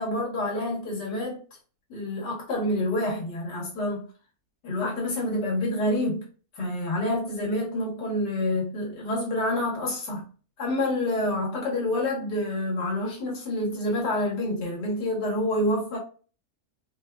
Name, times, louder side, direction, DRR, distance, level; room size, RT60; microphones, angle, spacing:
voice 1, 0.0-1.4 1.9-4.1 4.6-6.3 6.5-10.3 10.6-16.0, left 1 dB, 80° left, 1.9 m, -27 dB
4.4 x 2.3 x 2.2 m
omnidirectional pair, 1.8 m